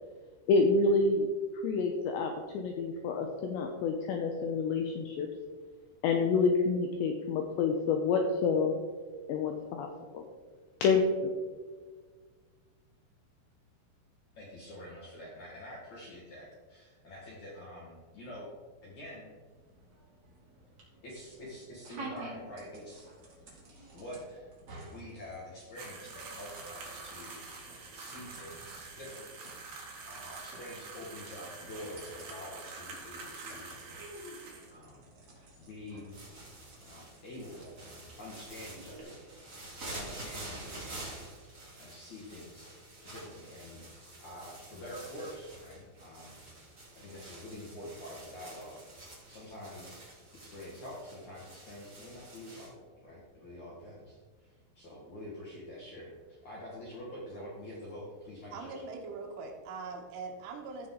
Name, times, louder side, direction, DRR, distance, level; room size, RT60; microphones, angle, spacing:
voice 1, 0.5-1.3 1.5-5.3 6.0-8.8 9.3-9.9 10.1-10.2 10.8-11.3, left 4 dB, 90° left, 3 dB, 2.5 m, -28 dB
voice 2, 14.4-18.5 18.8-19.3 21.0-23.1 23.9-24.5 24.9-29.4 30.1-33.7 34.7-35.0 35.4-36.1 36.8-37.8 38.2-39.2 39.8-41.1 41.4-42.7 43.1-46.4 46.9-50.1 50.3-58.8, left 1 dB, 60° left, -5 dB, 2.0 m, -46 dB
sound 1, 19.5-39.0, right 2 dB, 40° right, 3.0 m, -52 dB
sound 2, 25.8-34.7, right 4 dB, 55° right, 3.0 m, -46 dB
sound 3, 36.1-52.7, right 2 dB, 20° right, 3.1 m, -48 dB
voice 3, 58.5-60.9, right 4 dB, 75° right, 2 dB, 3.5 m, -42 dB
15.5 x 5.9 x 3.8 m, 1.5 s
omnidirectional pair, 6.0 m